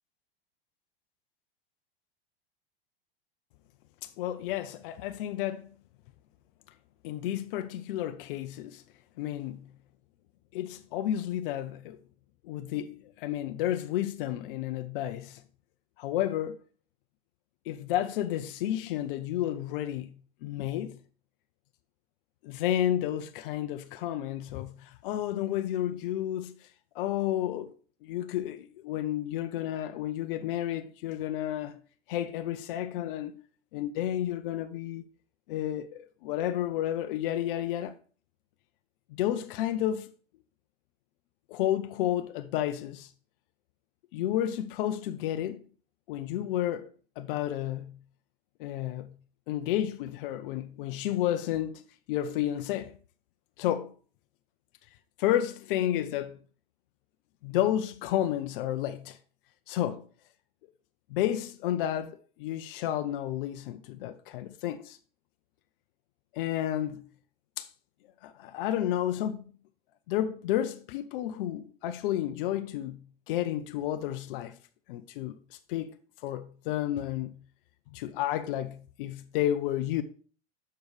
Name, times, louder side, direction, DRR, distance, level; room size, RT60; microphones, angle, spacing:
voice 1, 4.0-5.7 7.0-8.8 9.2-9.7 10.5-12.0 12.4-15.4 16.0-16.6 17.7-20.2 20.4-21.0 22.4-26.5 27.0-27.7 28.0-31.8 32.1-33.4 33.7-35.0 35.5-37.9 39.2-40.1 41.5-43.1 44.1-45.6 46.1-46.9 47.2-48.0 48.6-49.2 49.5-51.8 52.1-53.0 53.6-53.9 55.2-56.4 57.4-59.2 59.7-60.0 61.1-65.0 66.3-67.1 67.6-67.7 68.2-69.4 70.1-74.6 74.9-76.0 76.2-77.4 77.9-80.0, left 12 dB, 60° left, 0.6 m, -31 dB
6.8 x 6.6 x 3.2 m
hypercardioid pair, 115°, 29 cm